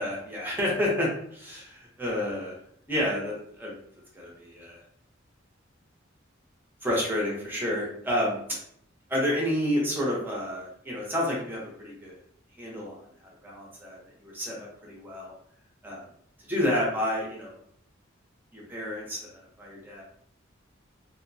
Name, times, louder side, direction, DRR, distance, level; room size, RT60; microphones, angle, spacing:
voice 1, 0.0-2.5 2.9-3.7 4.1-4.8 6.8-8.4 9.1-12.2 12.6-13.0 13.4-15.3 15.8-16.0 16.5-17.5 18.5-20.0, left 1 dB, 10° right, -4 dB, 0.7 m, -30 dB
2.6 x 2.1 x 2.6 m, 0.67 s
head